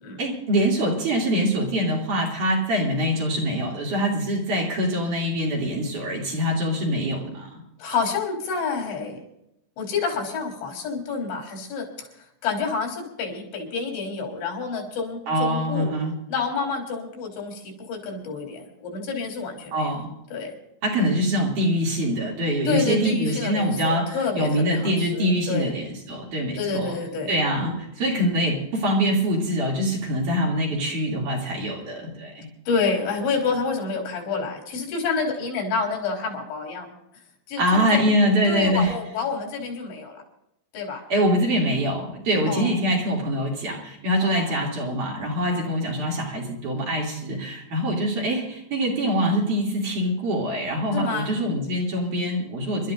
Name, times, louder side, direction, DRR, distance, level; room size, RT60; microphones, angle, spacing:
voice 1, 0.2-7.6 15.3-16.1 19.7-20.1 20.8-27.0 27.3-32.5 37.6-38.9 41.1-52.9, equal, 50° right, -3 dB, 4.0 m, -24 dB
voice 2, 7.8-9.2 9.8-12.1 12.4-15.9 16.3-19.9 20.3-20.5 22.7-25.7 26.6-27.3 27.6-27.8 32.7-36.9 37.5-38.1 38.5-40.2 40.7-41.0 42.5-42.7 44.2-44.5 45.5-45.7 50.9-51.3, left 5 dB, 80° left, 1 dB, 5.5 m, -28 dB
29.5 x 12.5 x 2.6 m, 0.80 s
omnidirectional pair, 5.1 m